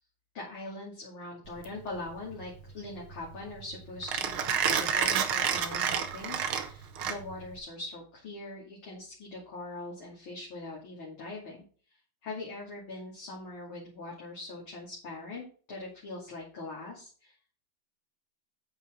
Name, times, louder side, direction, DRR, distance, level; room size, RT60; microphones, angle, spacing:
voice 1, 0.3-11.6 12.2-15.4 15.7-17.3, left 2 dB, 40° left, -5 dB, 3.0 m, -42 dB
Mechanisms, 1.5-7.6, right 7 dB, 90° right, 1.1 m, -30 dB
8.8 x 8.4 x 3.8 m, 0.41 s
omnidirectional pair, 4.1 m